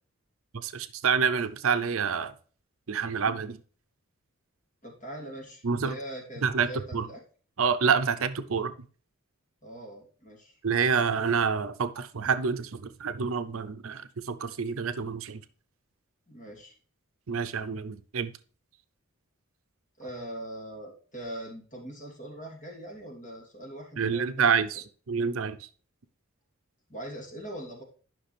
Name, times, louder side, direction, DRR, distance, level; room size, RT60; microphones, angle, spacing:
voice 1, 0.6-2.3 2.9-3.6 5.6-6.0 6.4-7.1 7.6-8.7 10.6-15.4 17.3-18.3 24.0-25.6, right 6 dB, 70° right, 12 dB, 0.6 m, -27 dB
voice 2, 4.8-7.2 9.6-10.5 16.3-16.7 20.0-24.5 26.9-27.8, right 1 dB, 35° left, -1 dB, 3.0 m, -41 dB
10.5 x 5.9 x 3.3 m, 0.40 s
head